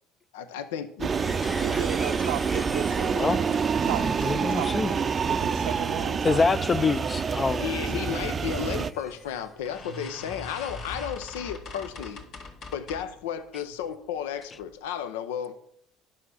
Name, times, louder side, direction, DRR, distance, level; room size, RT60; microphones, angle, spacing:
voice 1, 0.3-1.1 7.6-12.2 12.7-15.6, left 9 dB, 80° left, 0.7 m, -33 dB
sound 1, 1.0-8.9, right 6 dB, 35° right, 0.5 m, -27 dB
sound 2, 1.1-11.9 12.2-12.3, left 1 dB, 10° left, 1.1 m, -43 dB
sound 3, 1.2-2.8 3.2-4.8 5.3-5.9 6.3-6.7 7.0-7.1 7.4-7.5 8.5-8.6 9.0-9.1 9.7-13.2 13.7-14.1 14.5-14.7 15.0-15.1, left 3 dB, 55° left, 1.9 m, -43 dB
voice 2, 1.6-3.6 3.8-6.4, right 10 dB, 75° right, 0.6 m, -35 dB
voice 3, 4.2-4.9 6.2-7.6, left 4 dB, 30° left, 0.5 m, -25 dB
11.0 x 5.7 x 6.4 m
hypercardioid pair, 75°, 0 cm